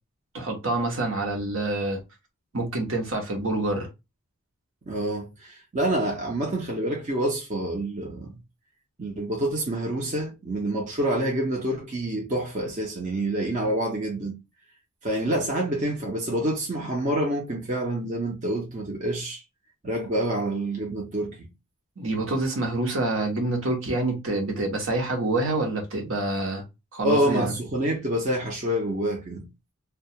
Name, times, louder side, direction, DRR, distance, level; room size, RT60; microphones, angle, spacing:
voice 1, 0.3-2.0 2.5-3.9 22.0-26.6 26.9-27.5, right 2 dB, 70° right, 0.9 m, -27 dB
voice 2, 4.9-8.4 9.0-14.4 15.0-19.4 19.8-21.5 27.0-29.4, right 1 dB, 35° right, 0.6 m, -27 dB
2.3 x 2.2 x 2.7 m
head